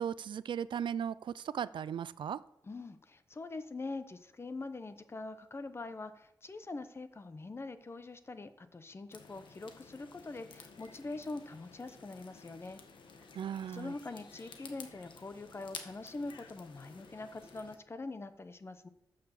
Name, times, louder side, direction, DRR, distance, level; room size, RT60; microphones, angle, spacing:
voice 1, 0.0-2.4 13.3-13.9, right 8 dB, 75° right, 0.4 m, -37 dB
voice 2, 2.6-12.8 13.7-18.9, left 3 dB, 30° left, 0.8 m, -43 dB
sound 1, 9.1-17.8, left 5 dB, 75° left, 1.4 m, -53 dB
12.5 x 6.6 x 6.9 m
wide cardioid pair, 120°, 8 cm